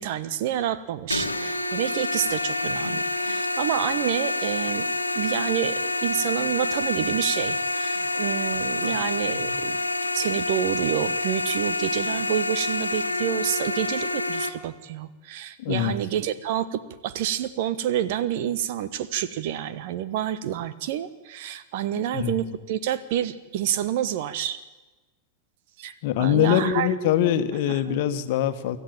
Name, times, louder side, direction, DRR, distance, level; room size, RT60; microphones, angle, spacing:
voice 1, 0.0-4.9 5.1-9.8 10.1-24.6 25.8-26.9 27.9-28.0, right 11 dB, 50° right, 14 dB, 1.2 m, -28 dB
sound 1, 1.1-14.5, left 2 dB, 85° left, 1.5 m, -27 dB
voice 2, 15.6-16.0 22.1-22.4 26.0-28.8, left 10 dB, 50° left, 9 dB, 1.5 m, -23 dB
25.0 x 14.0 x 8.9 m, 1.2 s
figure-of-eight pair, 90°, 0 cm